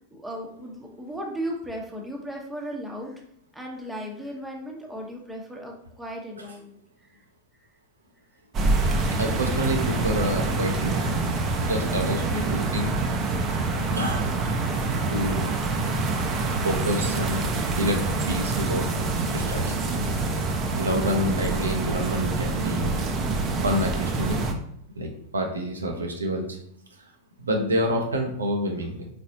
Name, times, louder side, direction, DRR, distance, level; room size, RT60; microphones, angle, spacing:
voice 1, 0.1-3.2 3.5-7.2, equal, 5° right, -1 dB, 0.9 m, -36 dB
sound 1, 8.5-24.5, right 3 dB, 30° right, 0.6 m, -26 dB
voice 2, 9.1-11.3 11.6-12.9 13.9-14.3 15.1-15.5 16.6-18.9 19.3-20.2 20.4-23.0 23.6-24.5 24.9-26.6 27.0-27.1 27.4-29.1, equal, 75° right, 2 dB, 0.7 m, -28 dB
4.3 x 3.9 x 2.7 m, 0.70 s
figure-of-eight pair, 90°, 0 cm